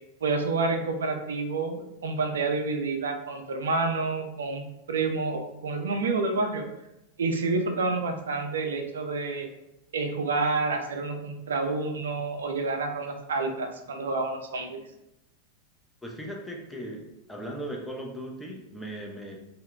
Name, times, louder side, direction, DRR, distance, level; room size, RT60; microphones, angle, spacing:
voice 1, 0.2-6.7 7.2-9.5 9.9-14.8, right 3 dB, 65° right, 5 dB, 0.4 m, -29 dB
voice 2, 16.0-19.4, right 1 dB, 5° left, 0 dB, 0.5 m, -38 dB
2.2 x 2.0 x 3.7 m, 0.90 s
figure-of-eight pair, 90°, 0 cm